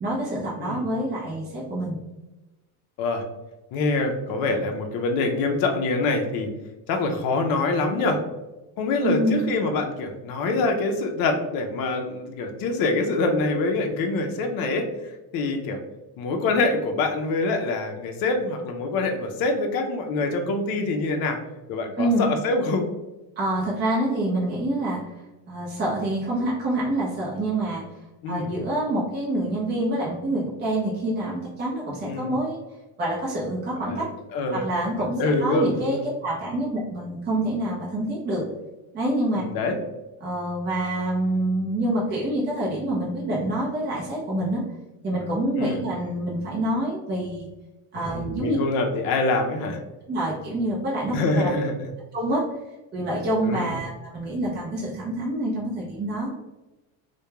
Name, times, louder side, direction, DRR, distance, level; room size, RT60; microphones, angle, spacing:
voice 1, 0.0-2.0 9.0-9.5 22.0-22.3 23.4-25.0 25.5-27.8 28.3-32.6 33.0-34.1 34.5-38.5 38.9-39.4 40.2-44.6 45.0-47.5 47.9-48.6 50.1-51.5 52.1-52.4 52.9-56.3, right 1 dB, 25° right, -4 dB, 0.5 m, -26 dB
voice 2, 3.7-6.5 6.9-8.2 8.8-14.9 15.3-15.8 16.2-21.4 21.7-22.9 28.2-28.5 32.0-32.4 33.9-34.0 34.3-34.7 35.0-36.0 39.3-39.8 45.6-45.8 47.9-49.8 51.1-51.8 53.4-53.7, left 3 dB, 55° left, 3 dB, 0.5 m, -25 dB
2.8 x 2.2 x 2.2 m, 1.1 s
cardioid pair, 115°, 43 cm